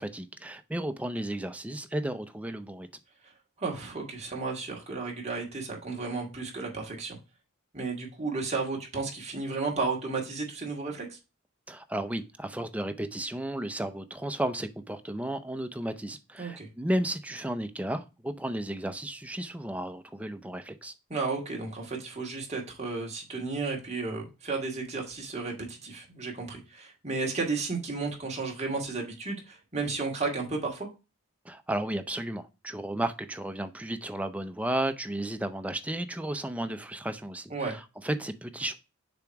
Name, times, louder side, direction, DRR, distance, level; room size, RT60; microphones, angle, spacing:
voice 1, 0.0-2.9 11.7-20.9 31.4-38.7, right 1 dB, 5° right, 0.5 m, -33 dB
voice 2, 3.6-7.2 7.7-11.2 16.4-16.7 21.1-30.9 37.5-37.8, right 3 dB, 30° right, 1.9 m, -33 dB
6.9 x 3.0 x 4.6 m
head